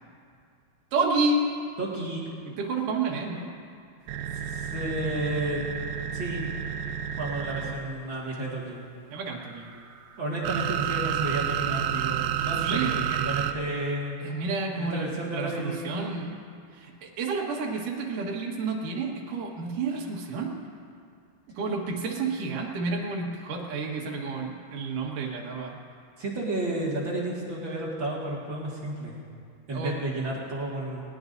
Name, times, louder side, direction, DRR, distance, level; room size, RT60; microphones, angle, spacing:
voice 1, 0.9-1.5 2.6-3.5 9.1-9.7 12.6-13.0 14.2-16.3 16.7-20.6 21.5-25.8 29.7-30.0, right 3 dB, 60° right, -1 dB, 2.9 m, -30 dB
voice 2, 1.8-2.3 4.5-5.6 6.1-6.4 7.2-8.8 10.2-14.2 14.7-16.2 26.2-29.1 29.7-31.0, right 1 dB, 40° right, -5 dB, 2.0 m, -32 dB
sound 1, 4.1-7.9 9.3-13.5, right 10 dB, 80° right, 2.4 m, -30 dB
19.5 x 19.5 x 2.7 m, 2.3 s
omnidirectional pair, 4.6 m